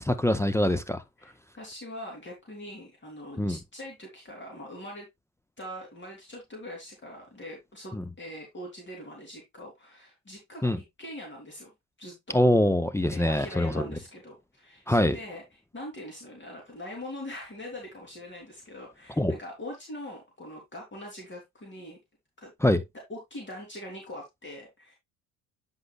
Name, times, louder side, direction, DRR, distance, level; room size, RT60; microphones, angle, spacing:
voice 1, 0.0-1.0 3.4-3.6 8.0-8.1 10.6-10.8 12.3-13.9 14.9-15.2 19.2-19.4 22.6-22.8, left 1 dB, 5° left, 0.8 m, -24 dB
voice 2, 1.2-5.1 5.6-11.7 12.0-12.4 13.0-22.0 22.4-22.5 23.1-25.0, left 1 dB, 25° left, 3.3 m, -42 dB
9.7 x 5.6 x 2.4 m
hypercardioid pair, 60°, 45 cm